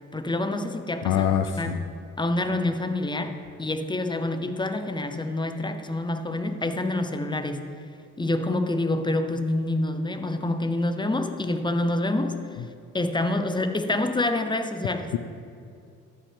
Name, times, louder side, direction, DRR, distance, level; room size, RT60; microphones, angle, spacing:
voice 1, 0.1-1.1 1.6-1.7 2.2-3.3 3.6-7.6 8.2-12.3 12.9-15.1, left 2 dB, 15° left, 7 dB, 0.7 m, -27 dB
voice 2, 1.0-1.8, left 9 dB, 90° left, 7 dB, 0.5 m, -24 dB
12.5 x 5.6 x 3.5 m, 2.4 s
cardioid pair, 90°, 30 cm